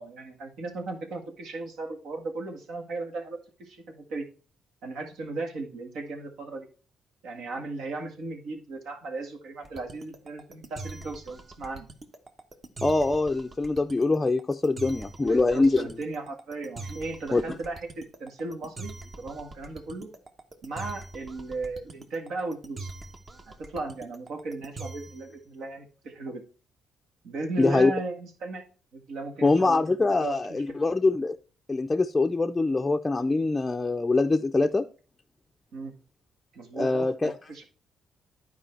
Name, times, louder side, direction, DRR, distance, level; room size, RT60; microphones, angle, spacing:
voice 1, 0.0-4.3 4.8-6.7 7.2-11.9 15.2-20.1 20.6-22.9 23.5-26.4 27.2-28.6 28.9-29.8 30.2-30.6 35.7-35.9 36.5-37.6, right 3 dB, 75° right, 3 dB, 1.7 m, -36 dB
sound 1, 9.6-25.3, right 3 dB, 35° right, 1.1 m, -42 dB
voice 2, 12.8-16.0 17.3-17.6 27.6-27.9 29.4-31.4 31.7-34.8 36.7-37.3, left 3 dB, 20° left, 4 dB, 0.4 m, -24 dB
10.0 x 4.7 x 4.4 m, 0.36 s
cardioid pair, 90°, 0 cm